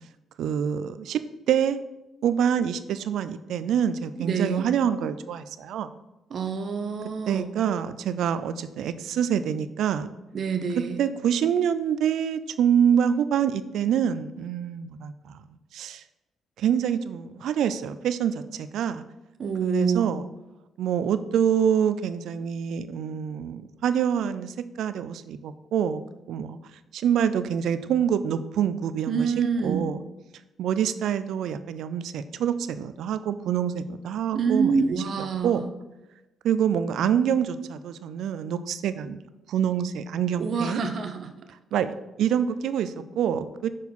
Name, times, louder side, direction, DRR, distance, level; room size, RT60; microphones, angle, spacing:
voice 1, 0.4-1.2 1.5-1.8 2.2-5.9 7.3-10.1 11.0-15.4 15.7-16.0 16.6-19.0 19.6-20.2 20.8-26.0 26.3-26.6 26.9-30.0 30.6-35.0 35.4-35.6 36.4-39.2 39.5-40.8 41.7-43.7, right 8 dB, 75° right, 13 dB, 0.4 m, -26 dB
voice 2, 4.2-4.7 6.3-7.5 10.3-11.0 19.4-20.1 29.1-29.9 34.3-35.6 40.4-41.3, right 5 dB, 55° right, 7 dB, 0.8 m, -27 dB
6.2 x 4.5 x 5.5 m, 1.0 s
cardioid pair, 90°, 0 cm